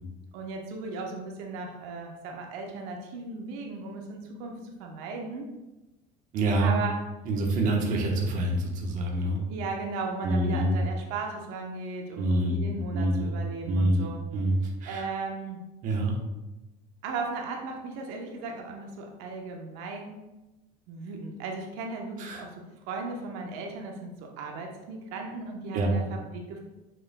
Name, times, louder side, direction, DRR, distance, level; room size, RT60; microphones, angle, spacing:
voice 1, 0.3-5.5 6.6-7.0 9.5-14.2 14.8-15.6 17.0-20.2 20.9-26.6, right 4 dB, 80° right, 1 dB, 1.0 m, -36 dB
voice 2, 6.3-6.7 7.3-9.4 10.2-10.7 12.2-13.3 13.7-15.0 15.8-16.2 22.2-22.4 25.7-25.9, right 1 dB, 45° right, 0 dB, 1.1 m, -26 dB
6.7 x 6.3 x 2.3 m, 1.0 s
cardioid pair, 160°, 19 cm